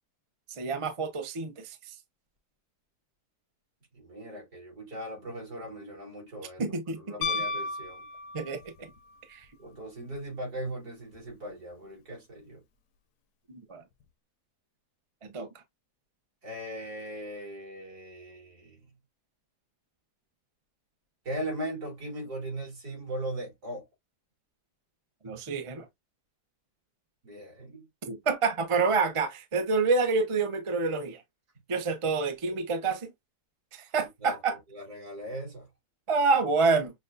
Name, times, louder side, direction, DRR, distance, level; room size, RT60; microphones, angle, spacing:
voice 1, 0.6-1.8 6.6-7.0 8.3-8.9 9.3-9.4 13.5-13.8 15.2-15.5 25.2-25.8 28.1-31.2 31.7-33.1 33.7-34.6 36.1-36.9, right 4 dB, 45° right, 0.4 m, -27 dB
voice 2, 3.9-8.0 9.6-12.6 16.4-18.8 21.2-23.8 27.2-27.9 34.0-35.7, right 1 dB, 65° right, 3.3 m, -39 dB
Piano, 7.2-8.8 11.1-11.2, left 3 dB, 75° left, 1.0 m, -33 dB
6.1 x 2.1 x 2.6 m
omnidirectional pair, 1.8 m